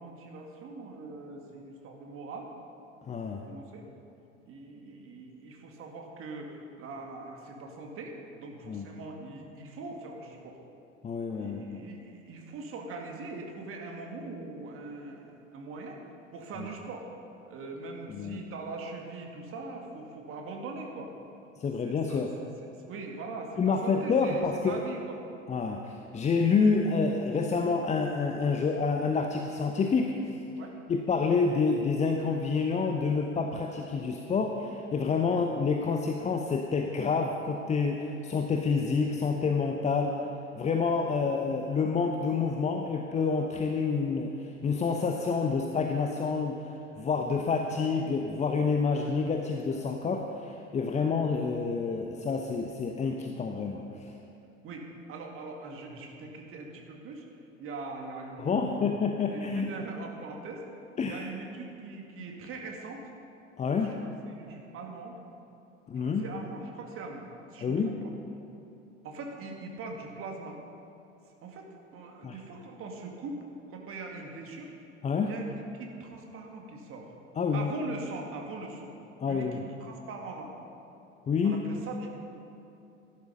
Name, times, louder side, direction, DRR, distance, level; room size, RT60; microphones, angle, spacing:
voice 1, 0.0-2.5 3.2-3.9 4.5-10.6 11.3-16.0 16.3-17.1 17.5-21.1 21.8-22.3 22.8-25.2 30.6-30.7 35.2-35.5 38.8-38.9 50.9-51.1 54.6-57.2 57.6-58.9 59.2-60.6 61.0-63.0 63.8-63.9 64.3-65.2 66.0-68.1 69.0-70.6 71.4-71.7 71.9-73.4 73.7-74.7 75.2-77.1 77.5-78.9 79.2-80.5 81.4-82.1, right 3 dB, 35° right, 1 dB, 2.3 m, -42 dB
voice 2, 3.1-3.4 8.7-8.8 11.0-11.8 18.1-18.4 21.6-22.3 23.6-24.9 25.5-30.4 30.9-40.2 40.6-46.6 46.9-54.1 58.4-59.7 61.0-61.2 63.6-64.0 65.9-66.2 67.6-67.9 72.2-72.4 75.0-75.3 77.4-77.7 79.2-79.6 81.3-81.6, left 5 dB, 20° left, 3 dB, 0.8 m, -28 dB
14.0 x 12.0 x 5.5 m, 2.9 s
figure-of-eight pair, 75°, 37 cm